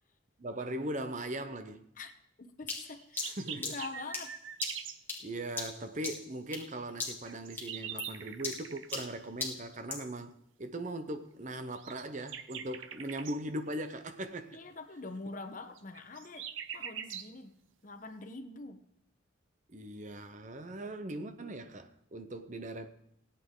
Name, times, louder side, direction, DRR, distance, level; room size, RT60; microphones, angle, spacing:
voice 1, 0.4-1.8 3.2-3.7 5.2-10.3 10.6-14.6 19.7-22.9, right 1 dB, 40° right, 0.7 m, -39 dB
voice 2, 2.4-4.3 14.5-16.5 16.7-17.6 17.8-18.8, left 3 dB, 40° left, 1.0 m, -44 dB
sound 1, 2.7-6.7 7.0-7.3 7.6-10.1, left 3 dB, 10° left, 1.8 m, -39 dB
sound 2, 2.9-5.0 7.0-9.1 11.7-13.4 15.8-17.3, right 9 dB, 80° right, 0.7 m, -43 dB
20.5 x 8.5 x 3.7 m
head